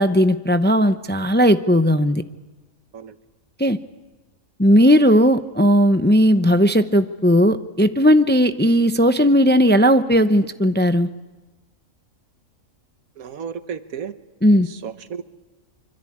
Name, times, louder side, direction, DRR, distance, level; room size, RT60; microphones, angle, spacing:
voice 1, 0.0-2.2 3.6-3.8 4.6-11.1 14.4-14.7, equal, 10° left, 9 dB, 0.5 m, -16 dB
voice 2, 13.2-14.1 14.7-15.2, right 7 dB, 90° right, 11 dB, 1.6 m, -33 dB
24.5 x 24.5 x 8.6 m, 1.2 s
omnidirectional pair, 1.4 m